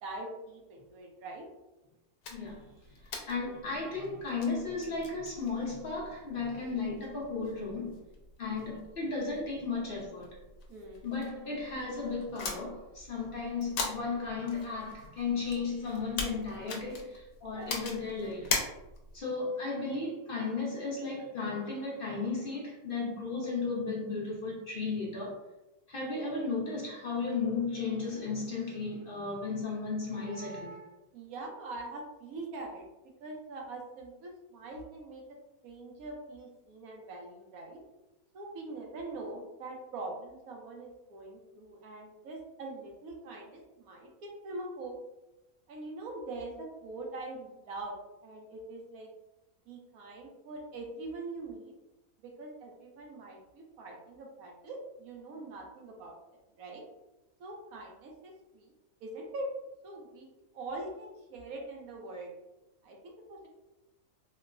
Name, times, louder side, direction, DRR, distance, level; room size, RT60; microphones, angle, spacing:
voice 1, 0.0-1.5 6.6-6.9 8.6-8.7 10.7-11.1 17.4-17.8 31.1-32.8 33.2-35.4 35.6-37.8 38.3-44.9 45.7-48.0 48.2-49.1 49.7-51.7 52.2-56.2 56.6-56.8 57.4-58.7 59.0-59.5 59.8-60.3 60.5-62.3 62.8-63.5, right 2 dB, 70° right, 0 dB, 1.1 m, -43 dB
sound 1, 2.2-19.2, left 4 dB, 75° left, 1.1 m, -42 dB
voice 2, 2.3-2.7 3.3-8.0 8.4-10.4 11.0-18.6 19.1-25.4 25.9-30.9, left 4 dB, 50° left, -4 dB, 0.7 m, -35 dB
4.4 x 2.0 x 2.4 m, 0.97 s
omnidirectional pair, 1.6 m